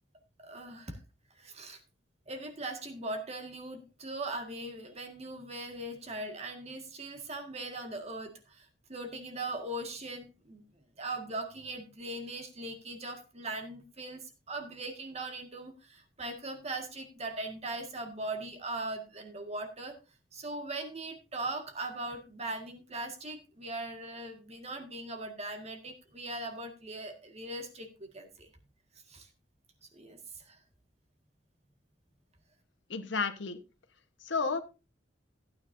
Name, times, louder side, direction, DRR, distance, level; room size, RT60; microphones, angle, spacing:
voice 1, 0.4-1.0 1.4-1.8 2.3-10.6 11.0-20.0 20.3-28.5 29.1-29.3 29.9-30.2 30.5-30.6, right 2 dB, 35° right, 6 dB, 1.9 m, -40 dB
voice 2, 32.9-33.6 34.2-34.6, left 4 dB, 85° left, 9 dB, 1.3 m, -31 dB
15.0 x 9.5 x 2.7 m, 0.30 s
head